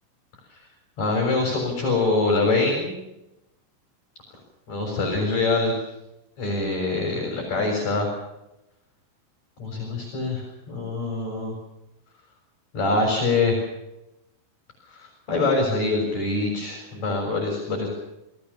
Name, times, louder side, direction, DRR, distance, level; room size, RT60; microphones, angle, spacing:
voice 1, 1.0-3.0 4.7-5.7 6.4-8.1 9.6-11.5 12.7-13.6 15.0-17.9, left 3 dB, 35° left, 1 dB, 7.6 m, -24 dB
28.5 x 19.5 x 7.0 m, 0.92 s
omnidirectional pair, 5.8 m